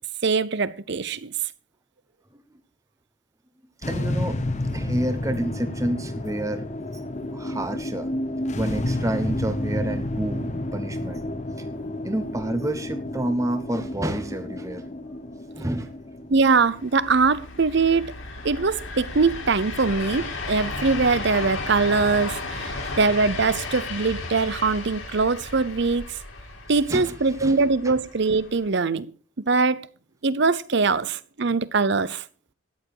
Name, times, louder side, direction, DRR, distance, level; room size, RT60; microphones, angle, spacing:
voice 1, 0.2-1.3 16.3-18.1 18.4-26.2 26.7-29.1 29.4-29.9 30.2-32.2, right 4 dB, 55° right, 0.7 m, -22 dB
sound 1, 3.8-20.2, left 1 dB, 35° left, 0.9 m, -31 dB
voice 2, 3.8-4.4 4.7-6.6 7.3-8.1 8.5-11.2 12.0-14.8 15.5-15.9 22.7-22.9 26.9-27.1 27.4-27.6 27.8-28.0, right 1 dB, 15° right, 0.9 m, -29 dB
sound 2, 16.7-28.7, left 3 dB, 65° left, 3.2 m, -34 dB
13.5 x 10.0 x 4.8 m
head